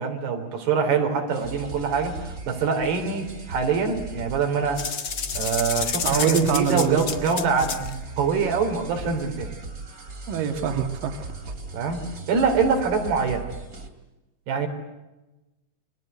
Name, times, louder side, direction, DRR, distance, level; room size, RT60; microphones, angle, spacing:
voice 1, 0.0-4.8 5.4-9.5 11.7-13.5 14.5-14.7, right 5 dB, 90° right, 5 dB, 5.6 m, -24 dB
sound 1, 1.3-13.9, right 3 dB, 25° right, 2.7 m, -38 dB
sound 2, 4.8-7.9, left 6 dB, 60° left, 1.0 m, -30 dB
voice 2, 6.0-7.1 10.3-11.3, right 7 dB, 65° right, 5 dB, 3.5 m, -24 dB
28.5 x 23.5 x 8.1 m, 1.0 s
omnidirectional pair, 4.5 m